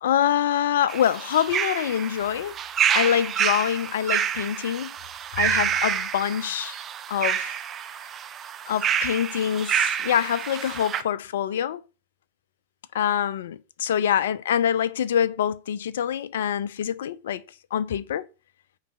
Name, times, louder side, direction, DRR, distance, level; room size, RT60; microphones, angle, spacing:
voice 1, 0.0-2.5 2.9-4.9 5.4-6.8 7.1-7.5 8.7-11.8 12.9-17.4 17.7-18.2, left 9 dB, 60° left, 0.6 m, -25 dB
sound 1, 0.9-11.0, right 9 dB, 25° right, 0.7 m, -28 dB
9.2 x 4.1 x 5.7 m
figure-of-eight pair, 90°, 0 cm